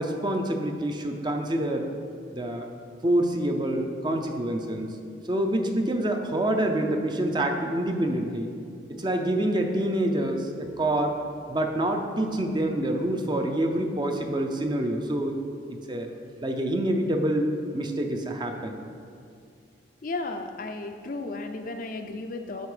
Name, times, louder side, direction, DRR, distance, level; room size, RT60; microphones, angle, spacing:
voice 1, 0.0-1.9 2.3-2.7 3.0-4.9 5.3-8.5 9.0-11.2 11.5-15.4 15.7-16.1 16.4-18.8, right 1 dB, 25° right, 4 dB, 0.6 m, -26 dB
voice 2, 20.0-22.7, left 2 dB, 45° left, 5 dB, 0.5 m, -34 dB
8.1 x 6.2 x 5.0 m, 2.4 s
head